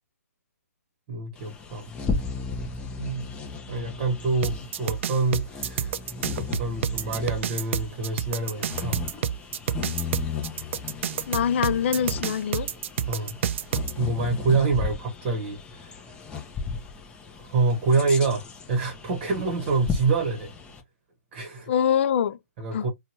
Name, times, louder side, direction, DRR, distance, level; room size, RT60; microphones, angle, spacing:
voice 1, 1.1-1.9 3.0-3.2 3.7-5.9 6.4-9.0 13.1-13.4 14.0-16.1 17.3-20.5 21.3-21.7 22.6-22.9, right 3 dB, 30° right, 1.0 m, -26 dB
Bird vocalization bird call bird song, 1.3-20.8, left 5 dB, 10° left, 0.6 m, -36 dB
sound 1, 4.4-13.9, right 9 dB, 50° right, 0.3 m, -29 dB
voice 2, 11.3-12.7 21.7-22.4 22.7-22.9, left 8 dB, 45° left, 0.4 m, -24 dB
2.8 x 2.3 x 2.8 m
hypercardioid pair, 140°, 9 cm